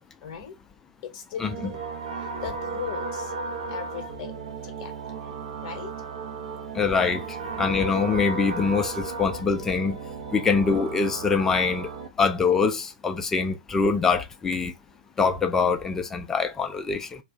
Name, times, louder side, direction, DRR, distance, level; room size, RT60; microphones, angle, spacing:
voice 1, 0.2-0.6 1.0-1.8 2.4-3.3 3.7-4.4 4.8-4.9 5.6-5.9, left 8 dB, 40° left, 0.9 m, -37 dB
sound 1, 1.4-12.1, right 4 dB, 55° right, 0.7 m, -35 dB
voice 2, 6.7-7.2 7.6-10.0 10.3-11.9 12.2-14.7 15.2-17.1, left 5 dB, 10° left, 0.4 m, -24 dB
2.3 x 2.3 x 3.9 m
figure-of-eight pair, 110°, 4 cm